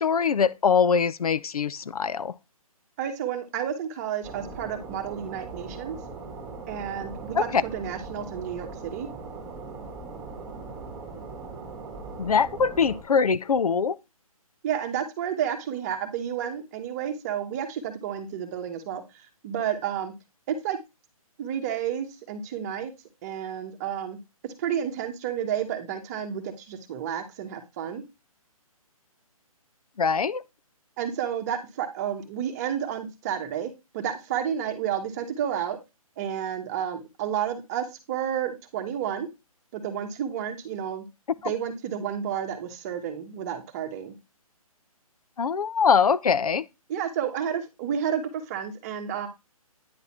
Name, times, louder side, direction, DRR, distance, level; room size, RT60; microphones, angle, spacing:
voice 1, 0.0-2.3 7.4-7.6 12.2-14.0 30.0-30.4 45.4-46.6, left 6 dB, 80° left, 0.5 m, -23 dB
voice 2, 3.0-6.0 6.7-9.1 14.6-19.0 19.4-20.1 20.5-20.8 21.4-22.9 23.2-24.2 24.6-28.0 31.0-35.8 36.2-39.3 39.7-41.0 41.4-44.1 46.9-49.3, right 9 dB, 25° right, 1.2 m, -31 dB
sound 1, 4.2-13.0, right 4 dB, 10° right, 1.8 m, -40 dB
9.5 x 4.0 x 4.3 m
figure-of-eight pair, 145°, 19 cm